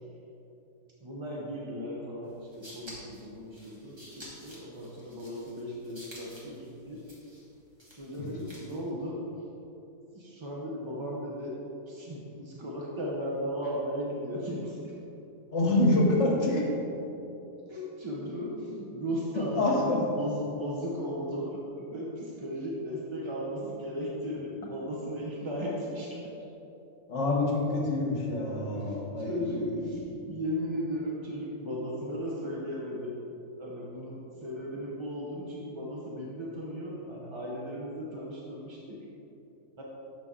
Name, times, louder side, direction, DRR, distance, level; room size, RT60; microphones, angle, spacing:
voice 1, 1.0-7.0 7.9-9.2 10.1-11.6 11.9-15.0 17.7-26.3 28.8-33.2 33.6-39.0 39.8-39.9, equal, 35° right, -4 dB, 0.4 m, -36 dB
sound 1, 2.3-8.9, equal, 20° right, 1.3 m, -51 dB
voice 2, 15.5-16.7 19.5-20.0 27.1-30.2, left 2 dB, 55° left, -2 dB, 1.4 m, -27 dB
6.8 x 5.7 x 3.7 m, 3.0 s
omnidirectional pair, 1.5 m